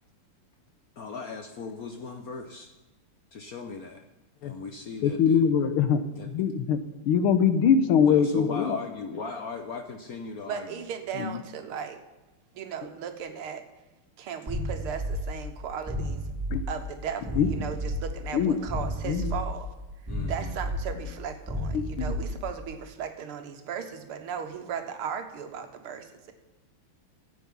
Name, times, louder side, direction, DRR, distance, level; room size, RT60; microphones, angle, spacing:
voice 1, 1.0-2.7 3.3-4.1 4.4-5.5 6.1-6.5 8.1-10.8 20.1-20.5 21.0-21.1, left 4 dB, 60° left, 4 dB, 1.0 m, -38 dB
voice 2, 5.0-6.8 7.0-8.8 11.2-11.3 16.5-16.6 17.4-17.5 18.3-18.6 19.1-19.3 21.7-22.1, left 7 dB, 80° left, 11 dB, 1.6 m, -23 dB
voice 3, 10.5-12.0 12.5-13.6 14.2-16.2 16.7-19.7 20.3-26.3, right 7 dB, 80° right, 7 dB, 2.0 m, -36 dB
sound 1, 14.5-22.7, equal, 5° right, 3.8 m, -33 dB
14.5 x 8.5 x 5.4 m, 1.0 s
omnidirectional pair, 2.4 m